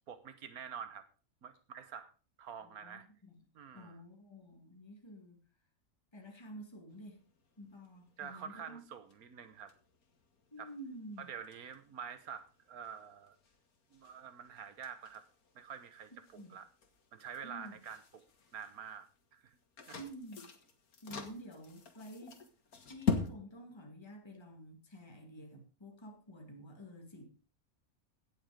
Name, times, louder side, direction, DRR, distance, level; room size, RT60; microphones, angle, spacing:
voice 1, 0.1-1.1 1.4-2.1 2.4-3.1 3.5-4.0 8.2-9.7 10.6-10.7 11.2-13.4 13.9-15.2 15.5-16.7 17.1-18.0 18.5-19.6 19.9-20.0, right 7 dB, 90° right, 11 dB, 1.6 m, -47 dB
voice 2, 2.6-3.3 3.7-5.4 6.1-7.2 7.6-8.8 10.5-11.3 16.4-16.5 17.4-17.7 20.0-20.5 21.0-22.4 22.9-27.2, right 1 dB, 20° left, 2 dB, 2.4 m, -50 dB
sound 1, 6.9-23.3, left 5 dB, 90° left, 2.2 m, -44 dB
17.0 x 7.1 x 5.0 m, 0.35 s
omnidirectional pair, 1.5 m